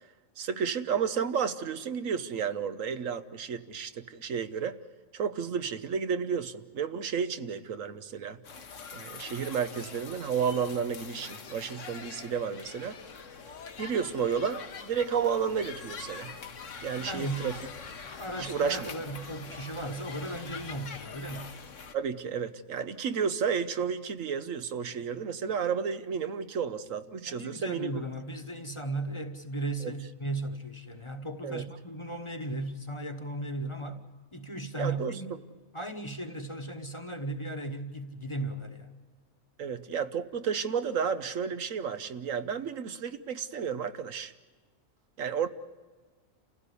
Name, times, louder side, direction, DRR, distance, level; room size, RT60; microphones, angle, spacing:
voice 1, 0.4-4.8 5.1-8.4 8.9-13.0 13.8-16.3 16.8-17.5 18.4-18.9 21.9-28.0 29.8-29.9 31.4-31.6 34.8-35.2 39.6-44.3 45.2-45.5, right 6 dB, 75° right, 10 dB, 1.3 m, -32 dB
sound 1, 8.4-21.9, left 5 dB, 65° left, 1.5 m, -44 dB
voice 2, 17.0-17.4 18.0-21.5 27.3-34.0 34.3-35.3 35.7-38.9, right 2 dB, 25° left, 5 dB, 1.3 m, -36 dB
28.5 x 16.0 x 8.3 m, 1.4 s
omnidirectional pair, 1.4 m